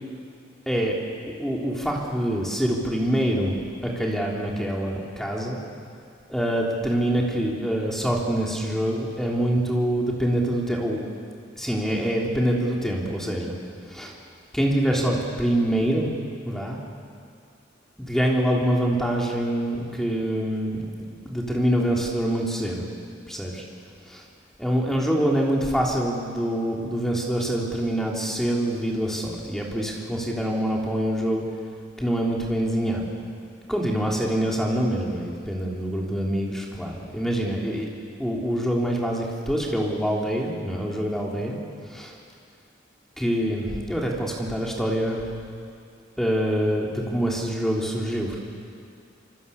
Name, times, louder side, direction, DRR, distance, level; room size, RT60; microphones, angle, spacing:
voice 1, 1.3-5.6 6.3-11.0 11.6-13.5 13.9-14.1 14.5-16.1 16.4-16.8 18.0-20.8 21.2-22.8 23.3-23.6 24.0-24.2 24.6-31.4 32.0-33.1 33.7-37.9 38.2-41.6 41.9-42.1 43.2-45.3 46.2-48.4, equal, ahead, -2 dB, 3.5 m, -25 dB
26.0 x 25.0 x 7.2 m, 2.3 s
head